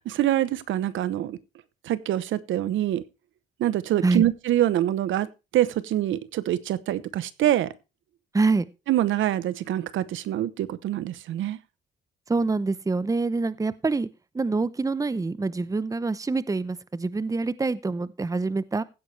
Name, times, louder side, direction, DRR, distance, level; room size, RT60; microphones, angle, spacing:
voice 1, 0.1-1.4 1.8-3.0 3.6-7.7 8.9-11.6, right 12 dB, 80° right, 0.9 m, -25 dB
voice 2, 8.3-8.7 12.3-14.1 14.3-18.8, right 3 dB, 15° right, 0.8 m, -25 dB
16.0 x 9.5 x 3.3 m
cardioid pair, 90°, 20 cm